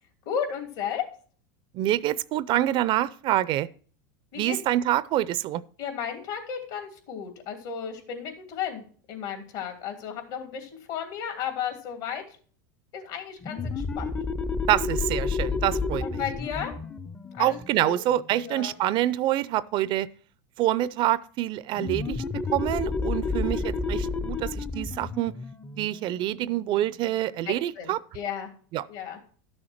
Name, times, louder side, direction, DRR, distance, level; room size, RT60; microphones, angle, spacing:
voice 1, 0.2-1.1 4.3-4.6 5.8-12.2 12.9-14.1 16.0-16.7 17.3-18.0 18.4-18.7 23.3-23.8 27.4-28.5 28.9-29.2, left 8 dB, 65° left, 2.9 m, -34 dB
voice 2, 1.7-3.7 4.4-5.6 14.7-16.2 17.4-20.1 20.6-22.2 22.5-25.3 25.8-28.0 28.7-28.9, right 14 dB, 45° right, 0.5 m, -26 dB
sound 1, 13.4-18.7 21.8-27.1, left 4 dB, 15° left, 0.6 m, -31 dB
12.0 x 6.5 x 4.4 m
supercardioid pair, 110°, 12 cm